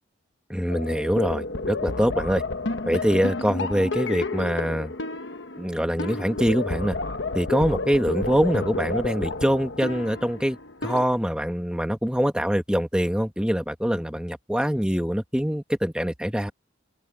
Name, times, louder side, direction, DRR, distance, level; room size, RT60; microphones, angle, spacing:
voice 1, 0.5-2.4 2.8-4.9 5.6-7.0 7.3-16.5, equal, 5° right, 1.6 m, -24 dB
sound 1, 0.7-11.1, left 2 dB, 65° left, 1.1 m, -31 dB
open air
head